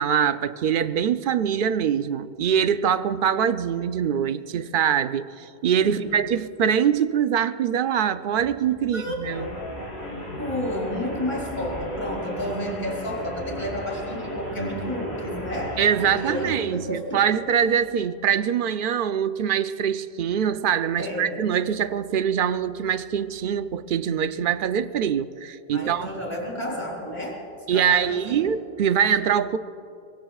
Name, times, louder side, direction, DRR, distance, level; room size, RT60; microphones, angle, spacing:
voice 1, 0.0-9.5 15.8-26.1 27.7-29.6, right 8 dB, 60° right, 12 dB, 0.7 m, -23 dB
voice 2, 5.8-6.2 8.9-9.1 10.4-17.2 17.6-17.7 21.0-21.4 25.7-27.4 27.7-28.5, equal, 30° left, -1 dB, 3.2 m, -31 dB
sound 1, 8.4-16.0, equal, 25° right, 4.9 m, -43 dB
sound 2, 9.2-16.6, left 1 dB, 85° left, 3.7 m, -34 dB
24.5 x 23.0 x 2.4 m, 2.7 s
omnidirectional pair, 1.0 m